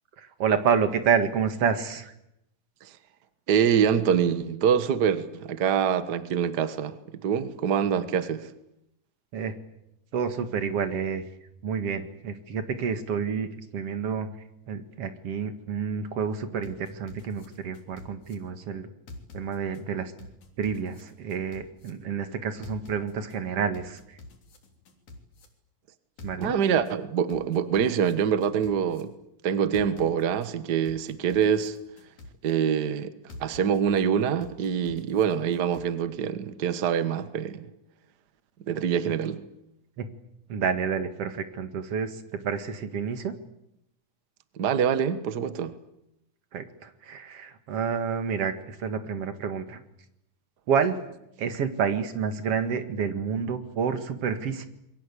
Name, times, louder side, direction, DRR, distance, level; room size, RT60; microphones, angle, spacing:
voice 1, 0.2-2.1 9.3-9.5 10.1-11.2 11.6-14.3 14.7-18.9 19.3-20.1 20.6-24.2 26.2-26.5 40.0-40.1 40.5-43.3 46.5-49.8 50.7-51.0 51.4-54.7, right 6 dB, 50° right, 2.4 m, -29 dB
voice 2, 3.5-7.0 7.2-8.5 26.4-29.1 29.4-31.8 32.4-33.1 33.4-37.7 38.7-39.4 44.6-45.7, right 8 dB, 75° right, 0.9 m, -25 dB
sound 1, 16.6-18.3 19.1-19.8 20.2-21.9 22.6-23.4 23.7-25.5 26.2-26.9 27.3-29.0 29.7-30.5 30.9-32.5 33.3-34.0 34.4-35.9, left 2 dB, 55° left, 4.6 m, -46 dB
27.0 x 23.0 x 8.4 m
omnidirectional pair, 4.0 m